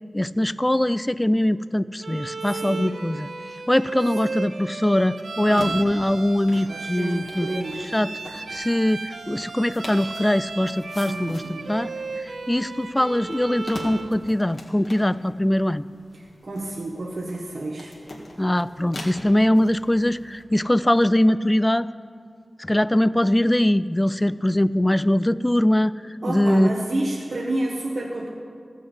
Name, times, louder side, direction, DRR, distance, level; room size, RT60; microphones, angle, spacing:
voice 1, 0.1-3.3 3.7-7.5 7.9-11.4 11.7-11.9 12.2-15.8 18.4-21.9 22.6-25.9 26.3-26.7, left 1 dB, 15° left, 17 dB, 0.3 m, -22 dB
Bowed string instrument, 2.0-14.2, right 3 dB, 80° right, 0.7 m, -35 dB
sound 1, 5.4-20.4, left 1 dB, 65° left, 1.8 m, -43 dB
voice 2, 6.7-7.8 11.0-11.8 16.1-18.0 26.2-28.3, right 1 dB, 65° right, -1 dB, 1.2 m, -29 dB
14.0 x 6.4 x 8.0 m, 2.2 s
cardioid pair, 45°, 0 cm